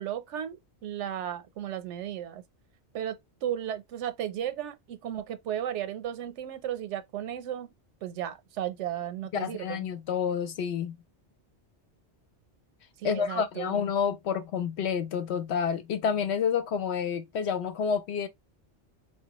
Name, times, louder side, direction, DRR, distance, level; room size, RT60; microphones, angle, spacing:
voice 1, 0.0-2.4 2.9-7.7 8.0-9.9 13.0-13.8, right 10 dB, 85° right, 0.9 m, -35 dB
voice 2, 9.3-11.0 13.0-18.3, left 7 dB, 70° left, 0.9 m, -29 dB
4.2 x 2.2 x 2.9 m
omnidirectional pair, 1.2 m